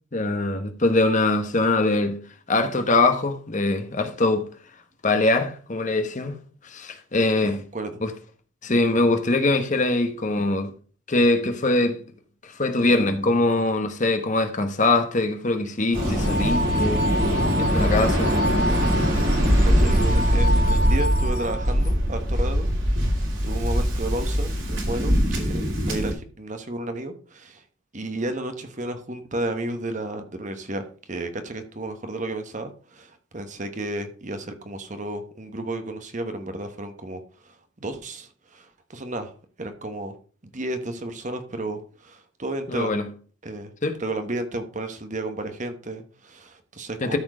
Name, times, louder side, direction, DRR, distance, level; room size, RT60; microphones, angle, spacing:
voice 1, 0.1-2.2 2.5-4.5 5.0-6.4 6.6-7.6 8.0-8.1 8.6-10.7 11.1-12.0 12.4-17.0 17.5-18.3 42.7-43.1 43.8-44.0 47.0-47.2, left 2 dB, 35° left, 1.0 m, -22 dB
Waves surf, 15.9-26.1, equal, 65° right, 3.0 m, -22 dB
sound 1, 16.1-21.9, equal, 75° left, 0.6 m, -29 dB
voice 2, 19.4-22.7 23.4-27.6 27.9-39.3 39.6-40.1 40.5-42.9 43.4-43.7 44.0-47.2, right 2 dB, 35° right, 1.1 m, -32 dB
13.0 x 4.4 x 4.9 m
head